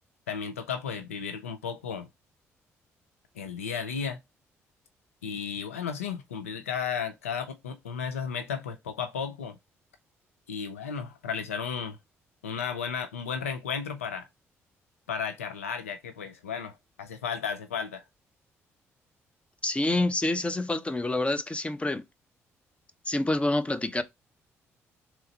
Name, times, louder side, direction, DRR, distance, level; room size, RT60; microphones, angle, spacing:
voice 1, 0.3-2.1 3.4-4.2 5.2-9.6 10.5-12.0 12.4-14.3 15.1-18.0, left 6 dB, 85° left, 0.4 m, -34 dB
voice 2, 19.6-22.0 23.1-24.0, left 2 dB, 15° left, 0.7 m, -27 dB
3.5 x 3.0 x 4.3 m
figure-of-eight pair, 45°, 7 cm